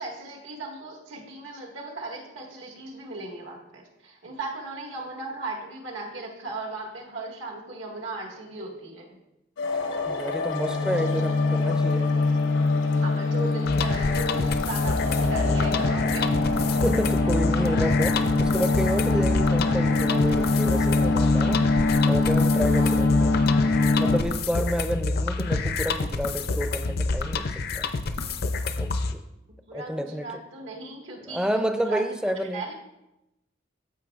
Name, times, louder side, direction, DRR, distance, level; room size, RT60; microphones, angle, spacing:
voice 1, 0.0-9.2 12.9-16.5 22.6-22.9 29.7-31.5 31.7-32.0 32.5-32.7, right 2 dB, 80° right, -1 dB, 1.7 m, -37 dB
sound 1, 9.6-24.2, left 3 dB, 80° left, 0.8 m, -23 dB
voice 2, 10.1-12.1 16.7-21.8 22.1-23.4 23.9-27.9 28.8-29.2 29.7-30.4 31.3-32.6, equal, 5° right, 7 dB, 0.4 m, -30 dB
sound 2, 13.7-29.1, left 3 dB, 55° left, 0.5 m, -28 dB
14.0 x 5.4 x 2.4 m, 0.92 s
head